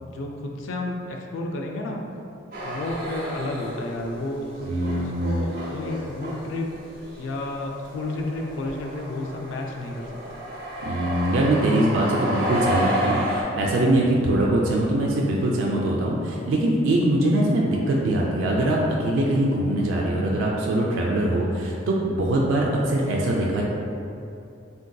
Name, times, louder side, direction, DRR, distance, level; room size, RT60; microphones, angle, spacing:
voice 1, 0.0-2.0 2.6-4.6 4.9-6.7 7.2-10.1, left 2 dB, 70° left, 1 dB, 0.4 m, -31 dB
sound 1, 2.5-4.2 4.4-13.4, right 1 dB, 45° right, 0.7 m, -31 dB
voice 2, 4.6-5.5 10.8-23.6, right 1 dB, 75° right, -2 dB, 0.3 m, -22 dB
3.7 x 2.6 x 2.2 m, 2.7 s
head